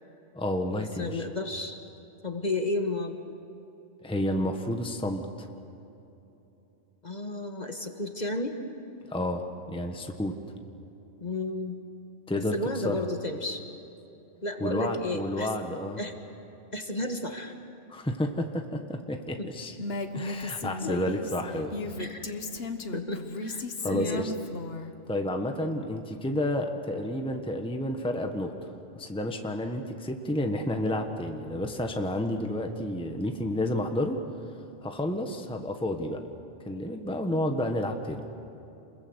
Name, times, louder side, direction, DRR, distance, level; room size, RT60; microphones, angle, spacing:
voice 1, 0.3-1.2 4.0-5.5 9.1-10.4 12.3-13.1 14.6-16.0 17.9-19.8 20.1-21.8 23.8-24.3 25.1-34.2 34.8-36.2 36.6-38.3, left 1 dB, 5° left, 4 dB, 1.2 m, -30 dB
voice 2, 1.0-1.8 2.2-3.2 7.0-8.6 11.2-11.8 12.3-13.6 14.4-15.5 16.0-16.1 16.7-17.5 19.4-19.5 19.8-19.9 20.8-21.0 22.0-22.4 22.9-24.3, left 2 dB, 35° left, 5 dB, 1.5 m, -32 dB
Female speech woman speaking, 19.8-24.9, left 2 dB, 55° left, 1.5 m, -35 dB
28.0 x 22.0 x 8.0 m, 3.0 s
omnidirectional pair, 1.3 m